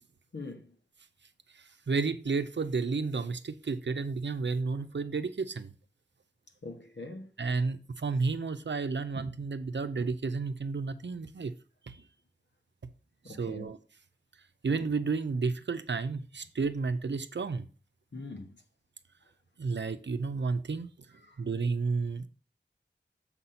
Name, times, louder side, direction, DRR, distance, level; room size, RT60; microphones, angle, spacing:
voice 1, 0.3-0.7 6.6-7.3 13.2-13.7 18.1-18.6 21.2-21.4, left 2 dB, 75° left, 1.3 m, -42 dB
voice 2, 1.9-5.7 7.4-11.5 11.9-12.0 13.3-13.8 14.6-17.7 19.6-20.9 21.4-22.3, right 4 dB, 80° right, 0.7 m, -31 dB
7.2 x 4.2 x 5.7 m
wide cardioid pair, 45°, 18 cm